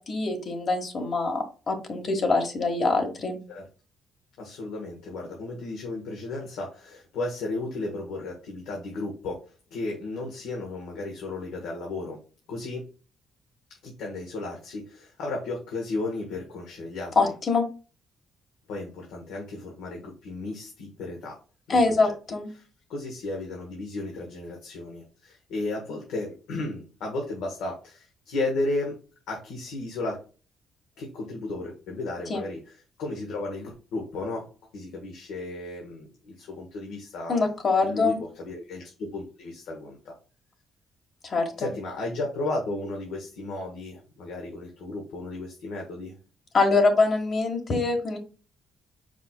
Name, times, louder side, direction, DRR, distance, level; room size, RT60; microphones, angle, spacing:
voice 1, 0.0-3.4 17.1-17.7 21.7-22.5 32.3-32.4 37.3-38.2 41.2-41.7 46.5-48.2, left 3 dB, 50° left, 4 dB, 1.3 m, -24 dB
voice 2, 4.4-12.2 12.5-12.9 13.8-17.2 18.7-21.4 21.7-22.1 22.5-29.0 29.3-30.2 31.0-34.5 34.7-37.5 37.8-40.1 41.6-46.1, left 2 dB, 90° left, 0 dB, 1.2 m, -34 dB
5.0 x 4.4 x 2.2 m, 0.35 s
cardioid pair, 90°, 0 cm